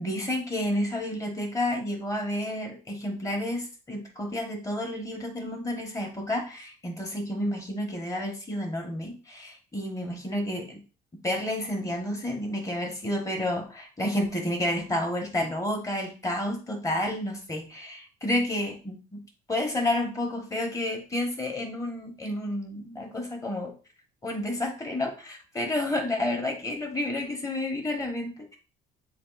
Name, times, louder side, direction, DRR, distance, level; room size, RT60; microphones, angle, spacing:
voice 1, 0.0-10.8 11.2-19.2 19.5-23.7 24.2-28.6, left 1 dB, 20° left, 2 dB, 1.3 m, -30 dB
7.4 x 2.5 x 2.5 m, 0.34 s
cardioid pair, 110°, 17 cm